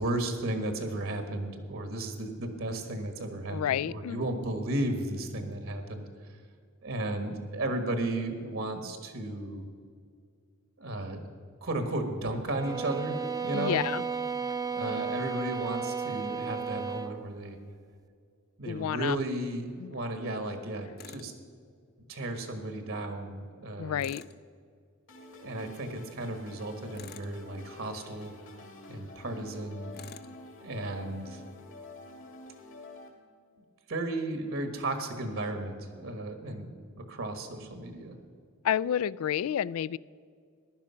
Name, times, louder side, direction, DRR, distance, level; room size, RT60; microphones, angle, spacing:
voice 1, 0.0-6.0 6.8-9.6 10.8-11.2 11.6-13.8 14.7-17.6 18.6-21.3 22.1-24.0 25.4-28.3 28.9-29.9 30.6-31.4 33.9-38.2, right 1 dB, 70° right, 6 dB, 1.4 m, -34 dB
voice 2, 3.5-4.2 13.5-14.0 14.8-14.9 18.7-19.2 19.8-20.0 23.8-24.2 38.6-40.0, left 9 dB, 85° left, 20 dB, 0.3 m, -30 dB
sound 1, 12.5-17.2, right 5 dB, 20° right, 0.5 m, -34 dB
Tools, 21.0-21.3 24.0-24.4 26.9-27.4 29.9-30.3, left 6 dB, 50° left, 0.6 m, -47 dB
sound 2, 25.1-33.1, left 2 dB, 65° left, 2.5 m, -48 dB
15.5 x 11.0 x 5.6 m, 2.1 s
head